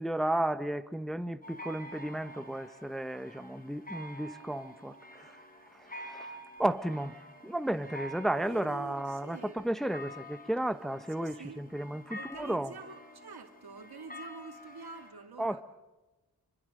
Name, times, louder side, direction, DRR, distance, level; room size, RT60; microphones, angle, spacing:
voice 1, 0.0-5.3 5.9-12.8 15.4-15.6, right 1 dB, ahead, 0.8 m, -33 dB
sound 1, 1.4-15.1, equal, 25° left, 4.2 m, -48 dB
voice 2, 8.3-9.7 11.2-11.7 12.1-15.6, right 4 dB, 80° right, 2.4 m, -47 dB
26.5 x 25.0 x 6.5 m
wide cardioid pair, 60°, 38 cm